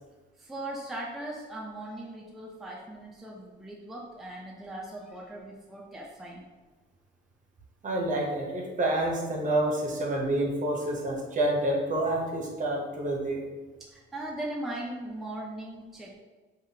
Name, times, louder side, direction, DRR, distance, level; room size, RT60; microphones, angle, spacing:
voice 1, 0.4-6.5 13.9-16.2, right 1 dB, ahead, -3 dB, 0.4 m, -39 dB
voice 2, 7.8-13.4, right 1 dB, 40° right, -1 dB, 0.7 m, -28 dB
3.4 x 2.3 x 2.7 m, 1.3 s
cardioid pair, 90°, 20 cm